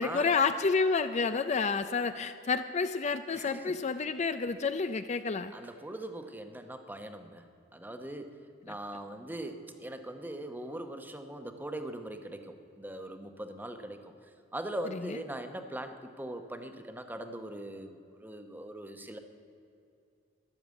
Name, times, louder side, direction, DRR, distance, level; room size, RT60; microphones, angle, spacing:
voice 1, 0.0-5.5, left 4 dB, 35° left, 10 dB, 0.4 m, -29 dB
voice 2, 3.3-3.8 4.5-4.6 5.5-7.4 7.7-8.4 8.6-14.1 14.5-19.2, right 1 dB, 10° right, 7 dB, 0.9 m, -41 dB
12.5 x 11.0 x 8.3 m, 2.6 s
head